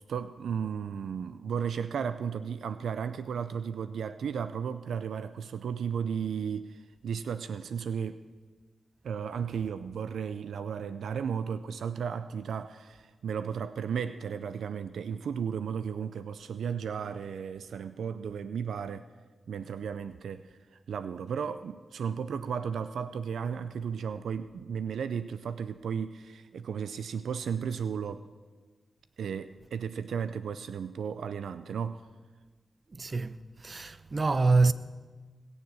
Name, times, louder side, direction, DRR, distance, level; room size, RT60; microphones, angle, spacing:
voice 1, 0.1-8.2 9.0-19.1 19.5-20.6 20.9-28.2 29.2-32.1, right 7 dB, 85° right, 0.4 m, -34 dB
voice 2, 32.9-34.7, right 3 dB, 50° right, 0.7 m, -26 dB
20.5 x 7.1 x 7.5 m
cardioid pair, 50°, 0 cm